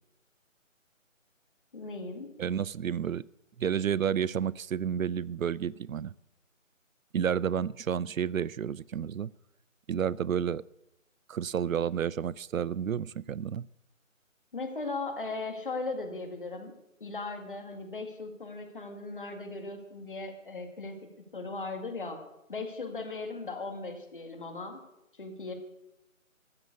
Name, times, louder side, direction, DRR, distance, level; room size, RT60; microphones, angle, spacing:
voice 1, 1.7-2.3 14.5-16.7 17.0-21.0 21.3-22.2 22.5-24.8 25.2-25.5, left 3 dB, 40° left, 2.1 m, -38 dB
voice 2, 2.4-3.2 3.6-6.1 7.1-9.3 9.9-10.6 11.3-13.7, right 8 dB, 75° right, 0.5 m, -30 dB
13.5 x 7.6 x 8.0 m
figure-of-eight pair, 170°, 40 cm